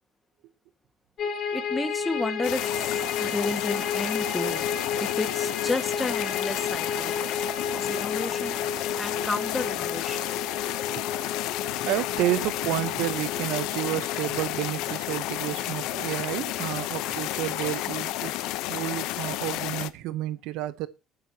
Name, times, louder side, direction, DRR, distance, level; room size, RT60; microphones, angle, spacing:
sound 1, 1.2-19.5, left 6 dB, 50° left, 3.5 m, -34 dB
voice 1, 1.2-4.7 5.0-7.2 7.7-8.6 9.0-10.3, left 2 dB, 15° left, 1.9 m, -32 dB
sound 2, 2.4-19.9, left 16 dB, 80° left, 0.9 m, -31 dB
voice 2, 11.9-18.3 18.7-20.9, right 15 dB, 80° right, 0.9 m, -30 dB
20.0 x 9.8 x 3.0 m
cardioid pair, 120°, 0 cm